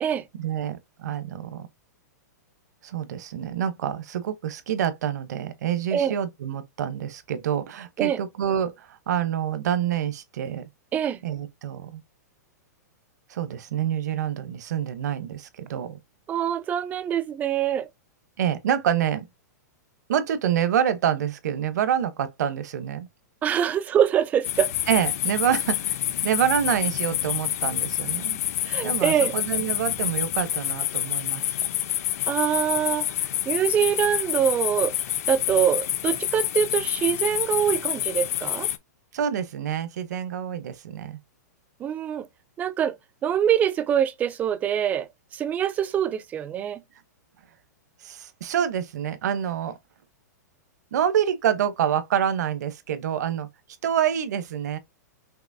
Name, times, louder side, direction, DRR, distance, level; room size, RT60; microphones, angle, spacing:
voice 1, 0.4-1.7 2.8-10.6 11.2-12.0 13.3-16.0 18.4-19.3 20.1-23.1 24.9-26.0 26.2-28.4 28.8-31.7 39.1-41.2 48.0-49.8 50.9-53.5 53.8-54.8, right 9 dB, 70° right, 0.9 m, -27 dB
voice 2, 16.3-17.9 23.4-24.7 28.7-29.3 32.3-33.1 33.5-35.0 35.3-38.7 41.8-42.3 42.6-43.0 43.2-46.8, right 9 dB, 15° right, 0.4 m, -24 dB
sound 1, 24.4-38.8, left 12 dB, 55° left, 0.7 m, -28 dB
5.9 x 2.9 x 2.7 m
hypercardioid pair, 155°, 10 cm